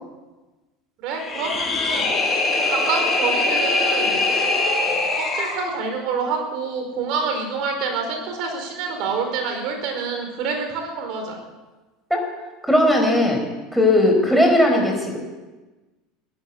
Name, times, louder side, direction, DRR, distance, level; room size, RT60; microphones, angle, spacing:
voice 1, 1.0-2.1 2.6-4.2 4.8-11.4, right 5 dB, 65° right, 4 dB, 4.8 m, -27 dB
sound 1, 1.1-5.6, left 2 dB, 20° left, 6.9 m, -22 dB
voice 2, 12.7-13.4 13.7-15.2, left 1 dB, ahead, 3 dB, 4.6 m, -17 dB
15.5 x 10.5 x 8.4 m, 1.2 s
supercardioid pair, 110°, 0 cm